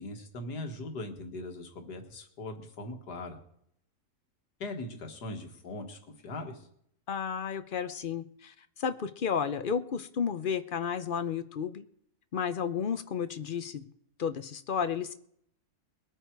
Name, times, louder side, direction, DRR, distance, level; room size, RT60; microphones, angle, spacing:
voice 1, 0.0-3.4 4.6-6.7, left 2 dB, 85° left, 4 dB, 2.2 m, -40 dB
voice 2, 7.1-11.8 12.3-13.8 14.2-15.1, left 7 dB, 55° left, 11 dB, 0.6 m, -32 dB
21.5 x 8.9 x 4.6 m, 0.69 s
omnidirectional pair, 1.7 m